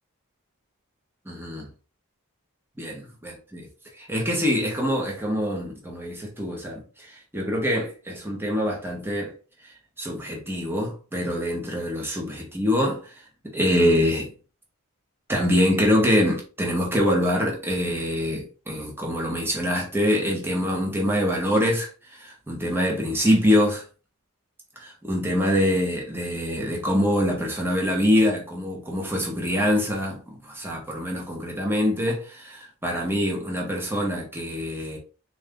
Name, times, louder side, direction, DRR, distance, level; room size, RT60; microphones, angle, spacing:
voice 1, 1.3-1.7 2.8-3.6 4.0-9.3 9.6-13.2 13.5-14.3 15.3-23.8 24.8-35.0, equal, 10° right, 0.9 m, -25 dB
3.8 x 2.6 x 3.4 m
head